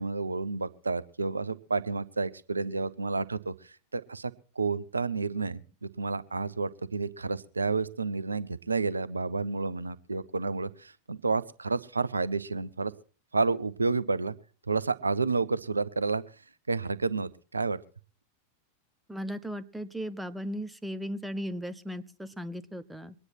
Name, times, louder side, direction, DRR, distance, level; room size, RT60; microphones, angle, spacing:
voice 1, 0.0-4.3 4.6-12.9 13.3-14.4 14.7-16.2 16.7-17.8, right 4 dB, 80° right, 16 dB, 0.7 m, -30 dB
voice 2, 19.1-23.1, equal, 5° right, 12 dB, 0.9 m, -36 dB
23.0 x 9.8 x 4.4 m, 0.38 s
figure-of-eight pair, 90°, 0 cm